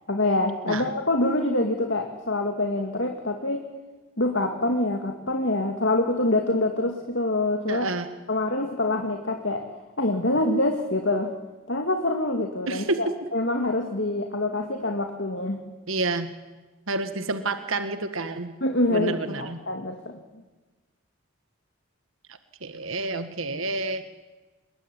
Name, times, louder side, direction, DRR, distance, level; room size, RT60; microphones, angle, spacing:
voice 1, 0.1-3.7 4.2-7.9 8.3-9.7 10.0-11.3 11.7-13.1 13.3-15.6 18.6-20.2, left 2 dB, 55° left, 4 dB, 2.4 m, -25 dB
voice 2, 7.7-8.1 12.7-13.0 15.9-16.3 16.9-18.5 18.9-19.6 22.3-24.0, right 3 dB, 70° right, 9 dB, 1.7 m, -29 dB
27.0 x 22.0 x 9.8 m, 1.2 s
head